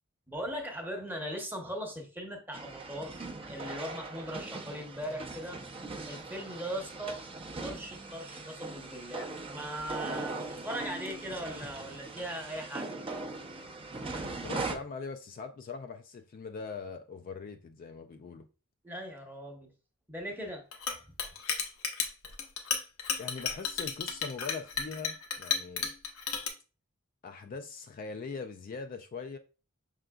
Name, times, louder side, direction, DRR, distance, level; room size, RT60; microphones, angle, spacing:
voice 1, 0.3-5.6 6.1-7.2 7.6-12.9 18.8-19.7 20.1-20.7, equal, 10° right, 0.8 m, -39 dB
sound 1, 2.5-14.8, right 3 dB, 25° right, 0.5 m, -40 dB
voice 2, 14.2-18.5 23.2-25.9 27.2-29.4, left 4 dB, 40° left, 0.3 m, -41 dB
Chink clink, 20.7-26.5, left 6 dB, 80° left, 0.8 m, -33 dB
5.7 x 3.7 x 2.2 m
head